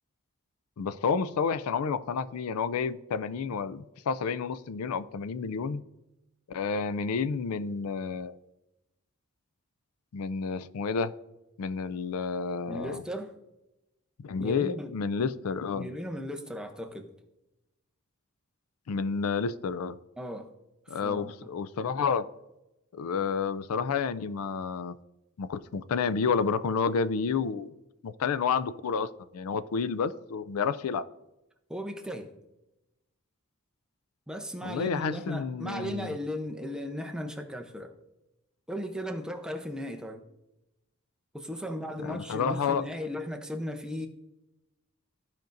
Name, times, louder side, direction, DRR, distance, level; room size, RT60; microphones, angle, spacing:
voice 1, 0.8-5.8 6.5-8.4 10.1-11.1 11.6-13.0 14.2-15.9 18.9-20.0 20.9-22.2 22.9-24.9 25.4-27.7 28.0-29.1 29.3-31.0 34.6-36.1 42.0-42.8, left 5 dB, 80° left, 0.4 m, -30 dB
voice 2, 12.7-13.3 14.4-14.9 15.7-17.1 20.2-20.5 20.9-21.5 31.7-32.4 34.3-38.0 38.7-40.2 41.3-44.1, equal, 5° right, 0.6 m, -36 dB
14.5 x 5.3 x 2.6 m
head